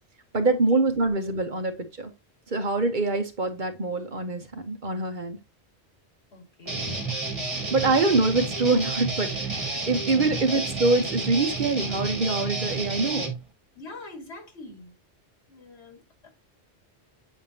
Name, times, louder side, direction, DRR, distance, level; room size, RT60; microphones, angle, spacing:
voice 1, 0.3-2.1 2.5-5.4 7.7-13.3, right 3 dB, 50° right, 1.1 m, -25 dB
voice 2, 6.3-6.9 10.5-10.6 13.7-14.9 15.5-16.3, left 2 dB, 80° left, 2.1 m, -44 dB
Guitar, 6.7-13.4, right 3 dB, 30° right, 1.6 m, -30 dB
7.8 x 5.1 x 2.8 m
omnidirectional pair, 1.1 m